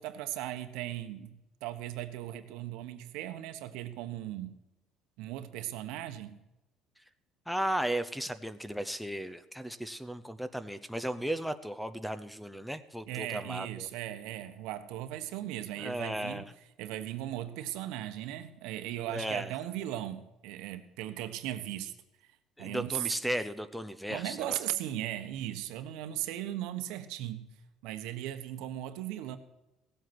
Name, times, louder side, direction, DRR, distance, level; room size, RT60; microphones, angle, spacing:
voice 1, 0.0-4.6 5.2-6.4 13.1-16.5 16.8-21.9 22.6-23.1 24.1-29.4, right 13 dB, 85° right, 9 dB, 1.2 m, -37 dB
voice 2, 7.5-13.9 15.8-16.5 19.1-19.5 22.6-24.6, right 1 dB, ahead, 13 dB, 0.7 m, -35 dB
17.5 x 7.9 x 6.1 m, 0.95 s
cardioid pair, 145°, 0 cm